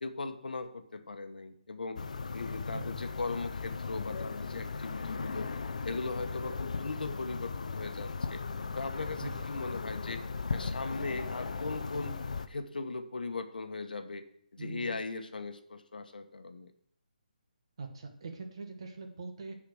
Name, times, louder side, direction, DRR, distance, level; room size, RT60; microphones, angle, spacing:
voice 1, 0.0-2.0 2.3-5.5 5.8-8.4 8.7-10.2 10.5-12.2 12.5-14.2 14.5-16.7, left 3 dB, 75° left, 8 dB, 1.2 m, -38 dB
sound 1, 2.0-12.5, left 4 dB, 55° left, 0.6 m, -37 dB
voice 2, 14.6-15.0 17.8-19.5, right 3 dB, 35° right, 4 dB, 1.4 m, -42 dB
10.5 x 4.9 x 6.4 m, 0.67 s
hypercardioid pair, 175°, 5 cm